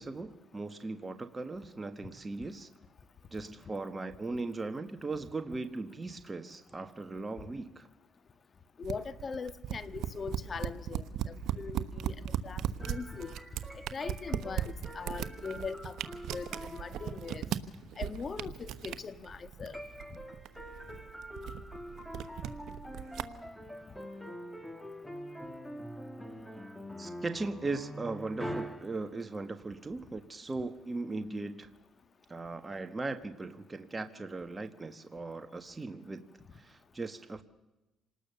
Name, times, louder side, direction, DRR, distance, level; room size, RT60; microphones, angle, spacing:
voice 1, 0.0-2.7 3.3-7.9 27.0-31.7 32.3-36.3 36.5-37.4, right 3 dB, 20° right, 8 dB, 1.4 m, -38 dB
voice 2, 8.8-13.3 13.9-16.0 16.3-17.5 18.0-19.8, left 5 dB, 40° left, 13 dB, 1.5 m, -41 dB
sound 1, 8.8-23.2, right 10 dB, 75° right, 1.2 m, -38 dB
sound 2, 12.8-17.4 19.7-29.0, equal, 5° left, 2.4 m, -44 dB
27.5 x 19.5 x 6.9 m, 1.0 s
cardioid pair, 90°, 0 cm